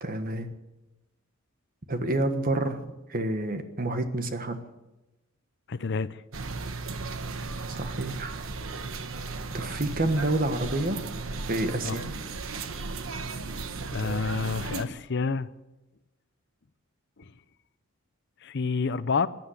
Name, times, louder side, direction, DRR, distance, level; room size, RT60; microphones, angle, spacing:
voice 1, 0.0-0.5 1.9-2.8 3.1-4.6 7.7-8.4 9.5-11.0 11.5-12.0, right 2 dB, 45° right, 1.4 m, -28 dB
voice 2, 5.7-6.2 11.8-12.1 13.9-15.5 17.2-17.3 18.4-19.3, left 4 dB, 55° left, 0.6 m, -29 dB
sound 1, 6.3-14.9, right 3 dB, 80° right, 1.1 m, -35 dB
15.0 x 10.5 x 8.0 m
head